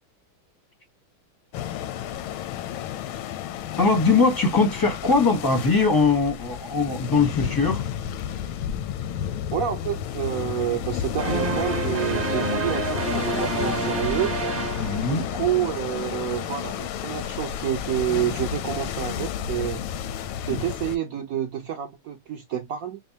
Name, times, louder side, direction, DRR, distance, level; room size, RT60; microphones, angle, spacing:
sound 1, 1.5-21.0, left 9 dB, 85° left, 1.4 m, -31 dB
voice 1, 3.8-7.8 14.8-15.2 20.5-20.6, left 4 dB, 20° left, 0.5 m, -21 dB
voice 2, 9.5-14.3 15.1-19.8 20.5-23.0, right 10 dB, 75° right, 0.8 m, -28 dB
sound 2, 11.2-15.7, right 2 dB, 35° right, 0.9 m, -28 dB
5.1 x 2.1 x 2.7 m
omnidirectional pair, 2.3 m